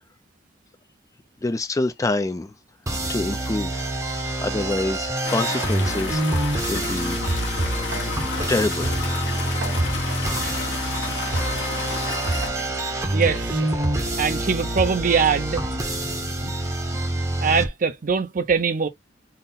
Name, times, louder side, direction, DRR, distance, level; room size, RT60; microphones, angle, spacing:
voice 1, 1.4-2.5 3.1-3.9 4.4-6.2 6.7-7.2 8.5-9.5 10.3-10.7 11.1-11.4, left 2 dB, 20° left, 0.3 m, -27 dB
sound 1, 2.9-17.7, right 1 dB, 15° right, 0.7 m, -27 dB
sound 2, 5.2-12.5, left 5 dB, 85° left, 1.0 m, -32 dB
sound 3, 5.3-6.8 7.2-15.8, right 2 dB, 65° right, 1.0 m, -31 dB
voice 2, 13.1-13.7 14.0-15.6 16.4-16.5 17.4-18.9, right 5 dB, 50° right, 0.5 m, -22 dB
3.8 x 2.1 x 4.0 m
head